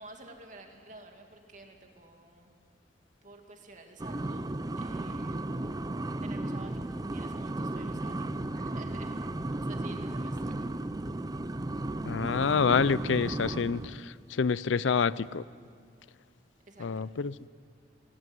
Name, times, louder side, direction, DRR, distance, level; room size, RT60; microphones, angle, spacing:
voice 1, 0.0-2.5 3.2-4.4 4.8-5.6 6.2-8.1 8.5-9.1 9.6-10.6 16.7-17.0, right 2 dB, 45° right, 3 dB, 2.4 m, -50 dB
sound 1, 4.0-14.0, right 2 dB, 20° right, 0.5 m, -35 dB
voice 2, 12.1-15.4 16.8-17.5, left 5 dB, 90° left, 19 dB, 0.5 m, -27 dB
19.0 x 18.5 x 9.6 m, 2.2 s
head